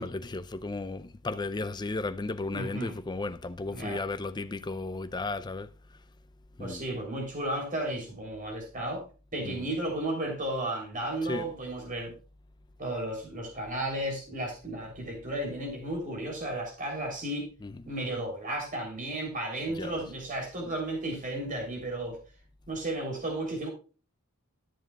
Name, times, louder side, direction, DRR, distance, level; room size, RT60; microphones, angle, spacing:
voice 1, 0.0-5.7 6.6-6.8 9.4-9.7 11.2-11.5 17.6-17.8 19.7-20.0, left 3 dB, 20° left, 0.4 m, -35 dB
voice 2, 2.5-2.9 3.7-4.0 6.6-9.0 9.3-12.1 12.8-17.5 17.9-22.2 22.7-23.7, right 1 dB, 40° right, 3.3 m, -33 dB
13.0 x 7.0 x 2.3 m
head